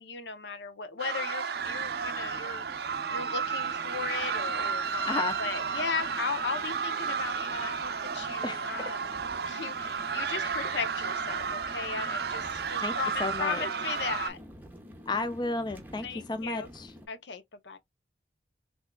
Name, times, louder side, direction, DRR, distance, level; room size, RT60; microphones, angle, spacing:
voice 1, 0.0-2.6 3.1-14.4 16.0-16.7 17.1-17.8, left 5 dB, 80° left, 0.7 m, -37 dB
sound 1, 1.0-14.3, right 6 dB, 60° right, 0.4 m, -32 dB
sound 2, 1.5-17.1, equal, 10° right, 0.7 m, -49 dB
voice 2, 13.2-13.6 15.1-16.9, left 3 dB, 25° left, 0.3 m, -32 dB
3.6 x 3.4 x 2.2 m
head